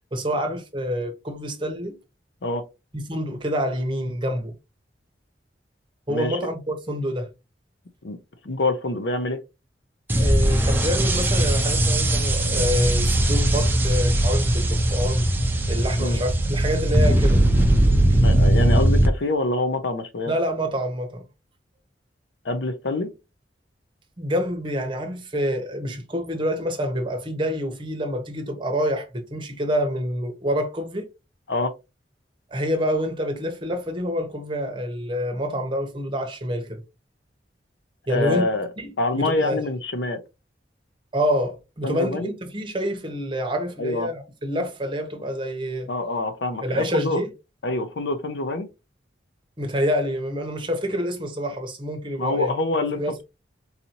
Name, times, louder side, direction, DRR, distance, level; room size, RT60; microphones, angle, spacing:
voice 1, 0.1-2.0 2.9-4.5 6.1-7.3 10.2-15.3 15.7-17.4 18.1-18.2 20.3-21.2 24.2-31.1 32.5-36.8 38.1-38.4 38.8-39.6 41.1-45.9 46.6-47.3 49.6-52.5 52.9-53.2, equal, 30° right, 0.9 m, -27 dB
voice 2, 6.1-6.5 8.0-8.2 8.4-9.4 16.0-16.2 18.2-20.3 22.4-23.1 31.5-31.7 38.1-38.7 39.0-40.2 41.8-42.3 43.8-44.1 45.9-47.2 47.6-48.7 52.2-53.2, left 2 dB, 80° left, 0.6 m, -26 dB
sound 1, 10.1-19.1, right 1 dB, 10° right, 0.6 m, -19 dB
4.1 x 2.7 x 2.9 m
head